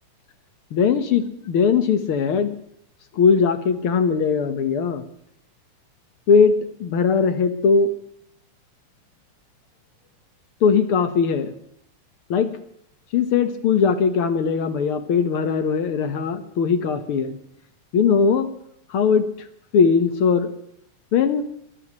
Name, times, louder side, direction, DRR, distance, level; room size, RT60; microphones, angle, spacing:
voice 1, 0.7-2.5 3.2-5.0 6.3-6.6 6.8-7.9 10.6-11.5 12.3-12.5 13.1-17.4 17.9-18.5 18.9-19.3 19.7-20.5 21.1-21.4, left 6 dB, 55° left, 9 dB, 1.9 m, -19 dB
23.5 x 17.5 x 3.2 m, 0.72 s
omnidirectional pair, 3.4 m